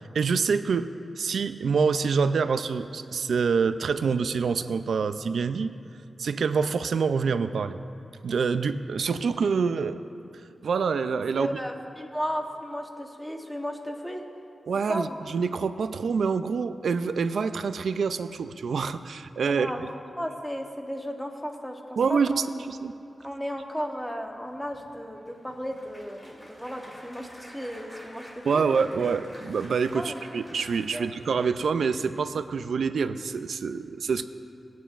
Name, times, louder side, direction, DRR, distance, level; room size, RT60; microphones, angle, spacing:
voice 1, 0.1-0.9 1.2-5.7 6.2-7.8 8.2-10.0 10.6-11.5 14.7-19.9 22.0-22.9 28.4-34.2, right 5 dB, 85° right, 11 dB, 0.4 m, -26 dB
voice 2, 11.3-14.2 14.9-15.2 19.5-19.9 20.2-22.5 23.2-28.6 29.9-30.2 30.9-31.1, equal, 5° left, 2 dB, 1.0 m, -34 dB
Applause, 24.0-32.3 32.9-33.2 33.5-33.6, equal, 25° left, 2.1 m, -49 dB
20.5 x 9.1 x 2.5 m, 2.7 s
wide cardioid pair, 115°, 0 cm